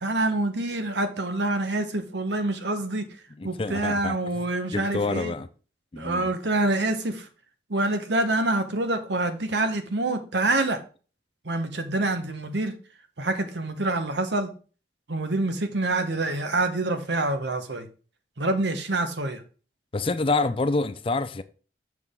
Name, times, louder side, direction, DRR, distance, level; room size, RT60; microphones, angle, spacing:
voice 1, 0.0-3.0 3.4-5.3 6.0-7.3 7.7-10.8 11.4-12.7 13.2-14.5 15.1-17.9 18.4-19.4, right 2 dB, 70° right, 1.2 m, -26 dB
voice 2, 3.4-4.5 4.7-5.5 5.9-6.3 19.9-21.4, left 3 dB, 30° left, 0.4 m, -27 dB
7.0 x 6.2 x 3.7 m
head